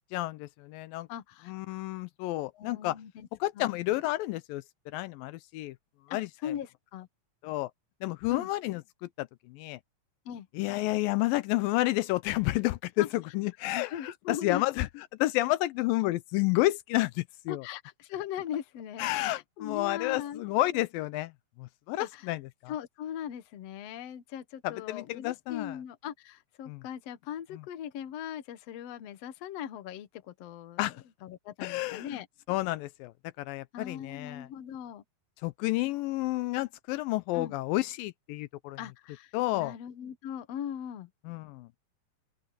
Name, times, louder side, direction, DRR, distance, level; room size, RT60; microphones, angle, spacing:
voice 1, 0.1-1.1 1.5-3.0 3.4-5.8 6.1-6.5 7.4-7.7 8.0-9.8 10.5-14.9 15.2-17.6 19.0-21.3 21.6-22.7 24.6-25.8 26.7-26.8 27.5-27.6 30.8-31.0 31.6-32.2 32.5-34.5 35.4-38.8 39.3-39.7 41.3-41.7, left 18 dB, 85° left, 2.3 m, -30 dB
voice 2, 1.1-1.5 2.5-3.3 3.6-3.7 6.1-7.1 8.3-8.5 10.3-10.5 13.0-13.1 13.8-14.7 17.5-20.4 20.7-20.8 22.0-22.3 22.7-30.9 31.2-32.3 33.7-35.0 37.3-37.6 38.8-41.1, left 10 dB, 60° left, 1.9 m, -39 dB
open air
omnidirectional pair, 4.1 m